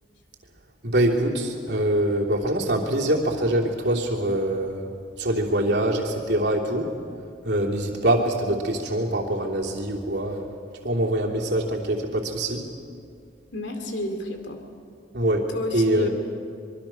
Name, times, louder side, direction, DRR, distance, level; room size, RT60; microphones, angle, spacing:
voice 1, 0.8-4.9 5.2-6.9 7.4-10.5 10.8-12.6 15.1-16.1, right 1 dB, 65° right, -1 dB, 3.1 m, -24 dB
voice 2, 13.5-14.6 15.5-16.1, left 1 dB, 70° left, 5 dB, 2.6 m, -31 dB
25.5 x 23.0 x 6.0 m, 2.4 s
head